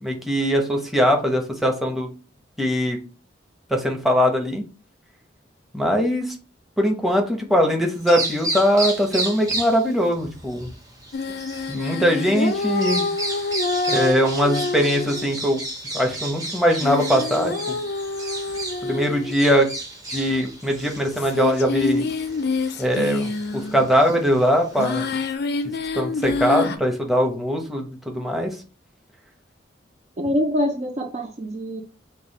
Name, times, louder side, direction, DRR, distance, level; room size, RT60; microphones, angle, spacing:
voice 1, 0.0-2.1 2.6-3.0 3.7-4.6 5.7-6.3 6.8-10.7 11.7-13.1 13.9-15.6 15.9-17.8 18.8-19.7 20.1-22.0 22.8-25.0 25.9-28.5, equal, ahead, 0.9 m, -21 dB
Bird vocalization bird call bird song, 7.9-25.3, right 2 dB, 20° right, 1.1 m, -33 dB
sound 1, 11.1-15.3 16.8-19.5 20.3-20.4 21.2-23.9 24.8-26.8, left 3 dB, 60° left, 0.5 m, -27 dB
voice 2, 30.2-31.8, equal, 40° right, 0.5 m, -24 dB
5.5 x 2.4 x 4.0 m
head